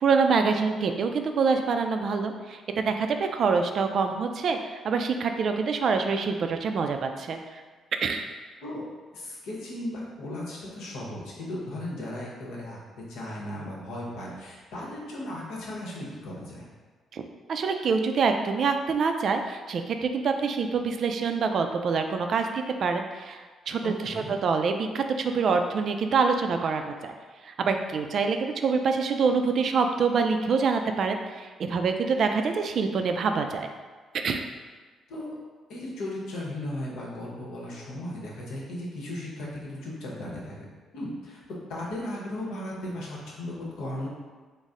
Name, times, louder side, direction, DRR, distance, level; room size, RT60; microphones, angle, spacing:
voice 1, 0.0-7.4 8.0-8.3 17.1-17.2 17.5-27.1 27.4-33.7 34.2-34.4, right 5 dB, 60° right, 6 dB, 0.3 m, -26 dB
voice 2, 9.1-12.8 13.1-16.7 23.8-24.3 35.1-35.3 35.7-40.6 40.9-41.4 41.7-44.1, left 1 dB, 85° left, -4 dB, 0.9 m, -36 dB
4.0 x 2.0 x 3.6 m, 1.4 s
cardioid pair, 90°, 0 cm